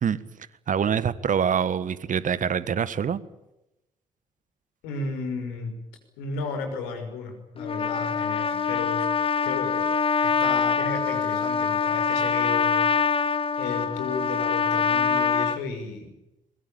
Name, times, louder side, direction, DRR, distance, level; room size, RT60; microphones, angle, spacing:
voice 1, 0.7-3.2, right 7 dB, 50° right, 16 dB, 1.6 m, -25 dB
voice 2, 4.8-5.7 6.2-9.1 9.4-9.9 10.2-12.8 13.6-16.2, left 4 dB, 75° left, 6 dB, 5.9 m, -33 dB
Trumpet, 7.6-15.6, left 6 dB, 35° left, 1.3 m, -24 dB
23.0 x 21.5 x 8.9 m, 0.91 s
hypercardioid pair, 45°, 17 cm